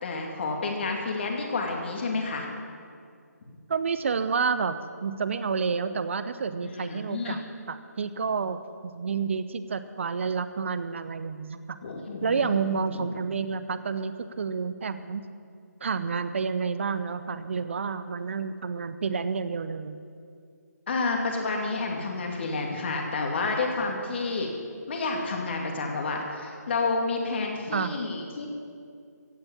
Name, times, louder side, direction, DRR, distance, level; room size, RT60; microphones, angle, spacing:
voice 1, 0.0-2.5 3.4-3.5 6.6-7.4 11.8-12.5 12.9-13.1 20.9-24.5 24.9-28.5, left 3 dB, 40° left, 1 dB, 2.4 m, -30 dB
voice 2, 3.7-7.4 7.7-11.8 12.2-15.2 15.8-20.0 27.7-28.0, right 5 dB, 45° right, 12 dB, 0.8 m, -29 dB
15.5 x 7.9 x 8.7 m, 2.3 s
figure-of-eight pair, 150°, 9 cm